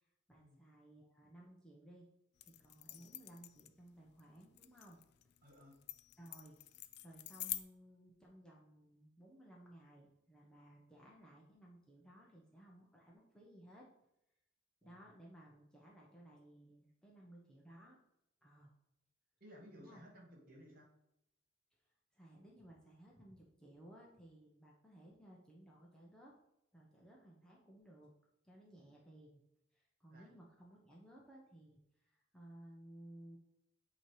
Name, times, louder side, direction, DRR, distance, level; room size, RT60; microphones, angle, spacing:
voice 1, 0.0-2.1 2.4-5.0 6.2-6.6 7.0-13.9 14.8-18.0 18.4-18.7 19.8-20.0 22.1-26.3 26.7-28.1 28.4-29.4 29.7-31.8 32.0-33.4, right 1 dB, 5° left, -4 dB, 0.9 m, -59 dB
sound 1, 2.4-7.6, left 14 dB, 55° left, 0.4 m, -47 dB
voice 2, 5.4-5.8 14.8-15.0 19.4-20.9 30.1-30.3, equal, 45° right, -1 dB, 1.9 m, -58 dB
8.7 x 3.1 x 4.8 m, 0.81 s
head